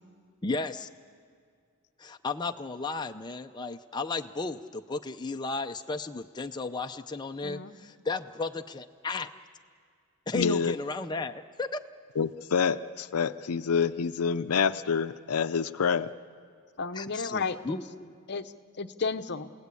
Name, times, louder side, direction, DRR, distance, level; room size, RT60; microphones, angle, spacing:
voice 1, 0.4-0.9 2.0-9.3 10.3-11.8 16.9-18.1, left 3 dB, 20° left, 5 dB, 0.5 m, -34 dB
voice 2, 7.4-7.7 16.8-17.8 18.3-19.5, left 4 dB, 50° left, 9 dB, 0.8 m, -33 dB
voice 3, 10.3-10.7 12.2-16.1, left 6 dB, 75° left, 13 dB, 0.5 m, -27 dB
30.0 x 17.5 x 8.3 m, 2.2 s
head